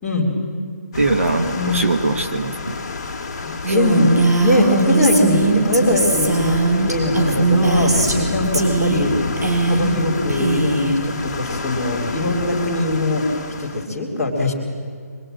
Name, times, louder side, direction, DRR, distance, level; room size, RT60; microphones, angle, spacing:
voice 1, 0.0-0.4 1.6-1.8 3.4-4.1 4.4-7.9 8.3-9.1 9.7-13.2 13.6-14.5, left 1 dB, ahead, -11 dB, 2.7 m, -21 dB
sound 1, 0.9-13.9, left 4 dB, 20° left, 2.1 m, -28 dB
voice 2, 0.9-2.8 3.7-3.8, right 3 dB, 50° right, 7 dB, 1.2 m, -21 dB
Female speech woman speaking, 3.6-8.3 8.5-9.1 9.4-10.0 10.3-10.9, right 3 dB, 75° right, 5.6 m, -20 dB
25.5 x 23.5 x 8.8 m, 2.1 s
hypercardioid pair, 180°, 9 cm